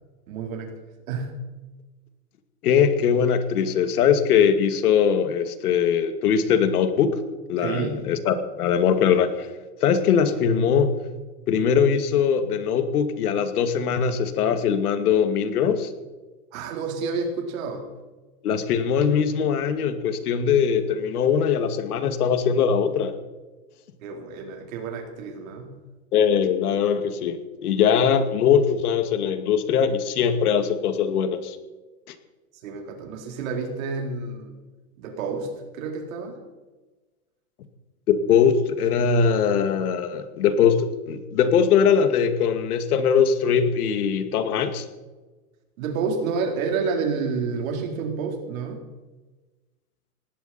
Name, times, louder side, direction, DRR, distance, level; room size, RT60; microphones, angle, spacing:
voice 1, 0.3-0.8 1.1-1.4 7.6-8.0 16.5-17.9 24.0-25.8 32.6-34.6 35.0-36.4 45.8-48.8, right 5 dB, 65° right, 3 dB, 4.1 m, -29 dB
voice 2, 2.6-7.2 7.5-9.5 9.8-11.0 11.5-15.9 18.4-23.1 26.1-31.6 32.1-32.2 38.1-44.8, left 7 dB, 75° left, 8 dB, 2.3 m, -21 dB
19.0 x 16.0 x 4.4 m, 1.2 s
supercardioid pair, 155°, 45 cm